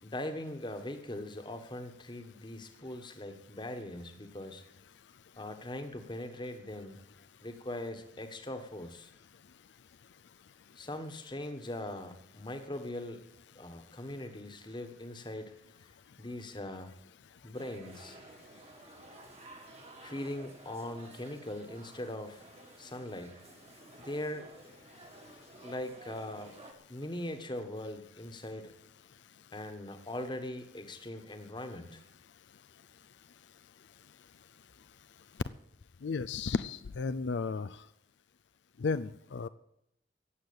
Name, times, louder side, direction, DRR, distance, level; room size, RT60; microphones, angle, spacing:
voice 1, 0.0-4.6 5.4-7.0 7.4-9.1 10.8-13.2 13.5-15.5 15.8-15.9 16.2-16.9 17.4-18.2 20.0-22.4 22.8-23.4 24.0-24.5 25.6-26.6 26.9-28.7 29.5-32.0, left 1 dB, 25° left, 7 dB, 1.4 m, -41 dB
sound 1, 17.5-26.7, right 2 dB, 35° right, 1.8 m, -53 dB
voice 2, 36.0-37.8 38.8-39.5, left 4 dB, 80° left, 12 dB, 0.5 m, -33 dB
14.5 x 8.1 x 8.7 m, 0.81 s
head